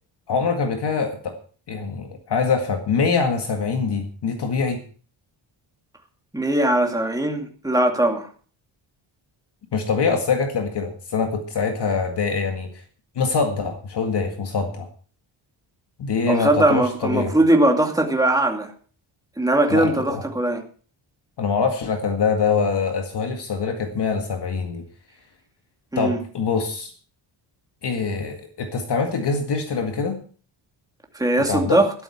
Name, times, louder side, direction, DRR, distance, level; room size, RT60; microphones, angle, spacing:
voice 1, 0.3-1.3 1.7-4.8 9.7-12.7 13.2-14.9 16.0-17.3 19.7-20.2 21.4-24.8 26.0-26.9 27.8-30.2 31.5-31.8, left 5 dB, 55° left, 4 dB, 2.0 m, -24 dB
voice 2, 6.3-8.3 16.3-18.7 19.4-20.6 25.9-26.2 31.1-31.9, right 1 dB, 5° right, 2 dB, 2.3 m, -20 dB
12.5 x 12.5 x 4.5 m, 0.42 s
wide cardioid pair, 135°, 49 cm